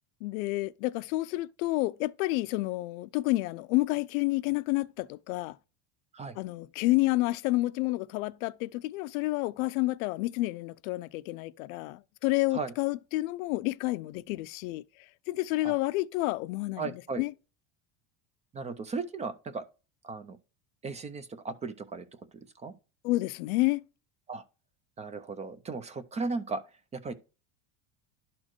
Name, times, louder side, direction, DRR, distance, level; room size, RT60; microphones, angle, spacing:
voice 1, 0.2-5.6 6.3-14.8 15.3-17.3 23.0-23.8, left 20 dB, 85° left, 0.6 m, -29 dB
voice 2, 16.8-17.2 18.5-19.6 20.0-20.4 20.8-22.1 22.3-22.7 24.3-24.4 25.0-26.6 26.9-27.1, right 4 dB, 15° right, 0.4 m, -36 dB
11.5 x 4.3 x 3.0 m
cardioid pair, 145°, 41 cm